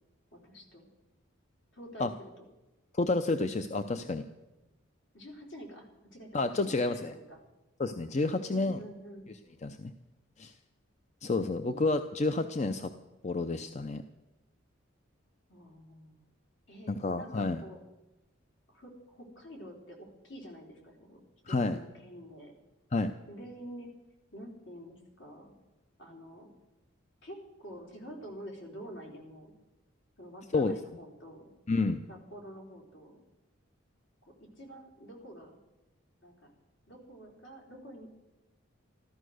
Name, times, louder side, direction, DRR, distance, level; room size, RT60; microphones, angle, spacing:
voice 1, 0.3-0.9 1.7-2.5 5.1-7.4 8.5-9.3 11.5-12.1 15.5-16.2 16.7-17.8 18.7-21.2 21.5-22.5 23.3-23.9 24.3-25.5 26.0-26.5 27.2-29.5 30.2-31.5 32.1-33.2 34.3-35.6 36.2-36.5 36.9-38.1, equal, 65° left, 0 dB, 3.7 m, -48 dB
voice 2, 2.9-4.3 6.3-7.1 7.8-8.8 9.6-9.9 10.4-10.5 11.2-12.9 13.2-14.0 16.9-17.6 21.5-21.8 22.9-23.1 30.5-30.7 31.7-32.0, left 3 dB, 35° left, 9 dB, 0.5 m, -30 dB
14.0 x 13.5 x 6.4 m, 1.0 s
head